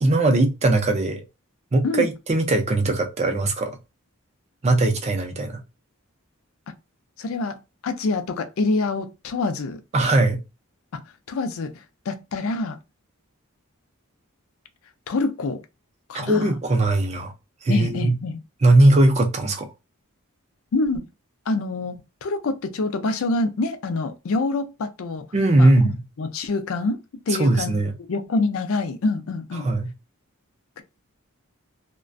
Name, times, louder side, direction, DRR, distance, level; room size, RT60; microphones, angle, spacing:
voice 1, 0.0-1.2 1.7-3.7 4.6-5.6 9.9-10.4 16.1-17.3 17.6-18.2 18.6-19.7 25.3-26.0 27.4-27.9 29.6-29.9, right 2 dB, 30° right, 0.4 m, -19 dB
voice 2, 7.2-7.6 7.8-9.8 10.9-11.0 11.3-12.8 15.1-15.6 16.1-16.5 17.7-18.4 20.7-21.1 21.5-25.3 25.6-27.8 28.1-29.7 30.8-30.9, left 3 dB, 70° left, 0.4 m, -26 dB
2.4 x 2.1 x 2.4 m
head